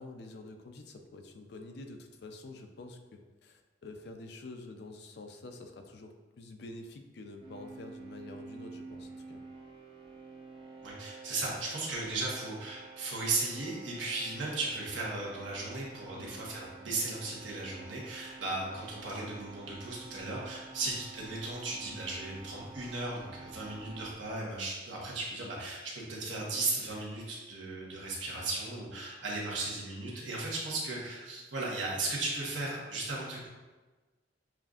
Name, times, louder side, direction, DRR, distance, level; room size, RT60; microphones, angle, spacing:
voice 1, 0.0-9.4 16.1-16.4 20.8-20.9, left 2 dB, 60° left, 5 dB, 0.4 m, -48 dB
sound 1, 7.4-24.1, right 4 dB, 30° right, 0.6 m, -50 dB
voice 2, 10.8-33.5, right 2 dB, 90° right, -4 dB, 1.2 m, -36 dB
7.3 x 2.5 x 2.4 m, 1.3 s
head